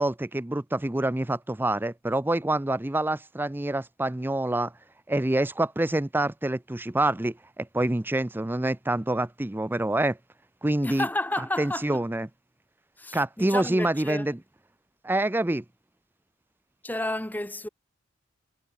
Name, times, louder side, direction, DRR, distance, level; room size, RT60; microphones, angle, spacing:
voice 1, 0.0-4.7 5.1-10.2 10.6-11.1 11.4-12.3 13.1-14.4 15.0-15.6, right 1 dB, 10° right, 0.5 m, -26 dB
voice 2, 10.8-12.0 13.0-14.3 16.8-17.7, left 1 dB, 10° left, 1.1 m, -31 dB
head